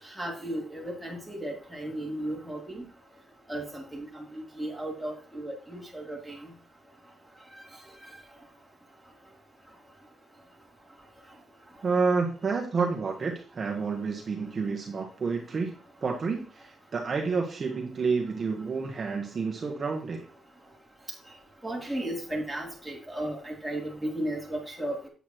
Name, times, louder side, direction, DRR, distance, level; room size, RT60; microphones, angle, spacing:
voice 1, 0.2-2.8 3.5-6.5 21.6-25.0, right 1 dB, ahead, -3 dB, 3.1 m, -35 dB
voice 2, 11.8-15.7 16.0-20.3, right 4 dB, 40° right, 1 dB, 1.3 m, -29 dB
8.3 x 8.2 x 3.0 m, 0.37 s
cardioid pair, 115°, 0 cm